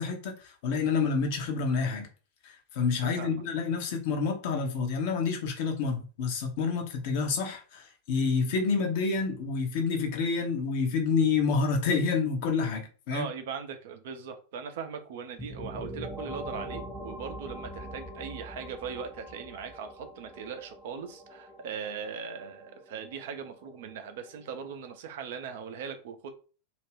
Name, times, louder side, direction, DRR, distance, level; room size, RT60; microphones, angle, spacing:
voice 1, 0.0-2.1 2.4-13.3, left 5 dB, 50° left, 0.7 m, -28 dB
voice 2, 13.1-26.3, right 6 dB, 55° right, 0.5 m, -39 dB
sound 1, 15.4-24.9, equal, 5° right, 0.5 m, -43 dB
2.4 x 2.1 x 3.3 m
figure-of-eight pair, 90°, 0 cm